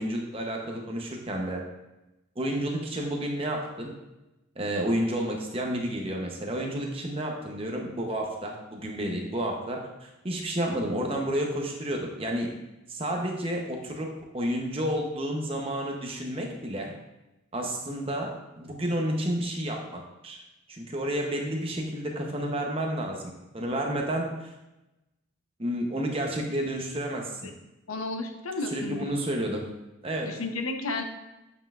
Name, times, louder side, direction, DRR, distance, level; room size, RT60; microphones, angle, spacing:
voice 1, 0.0-1.6 2.4-3.9 4.6-12.5 12.9-14.1 14.3-16.9 17.5-20.4 20.7-23.2 23.5-24.5 25.6-27.4 28.7-29.6 30.0-30.3, right 1 dB, 25° right, 1 dB, 0.8 m, -30 dB
voice 2, 27.9-29.1 30.2-31.0, left 2 dB, 90° left, 5 dB, 0.8 m, -32 dB
8.1 x 5.4 x 2.4 m, 0.97 s
head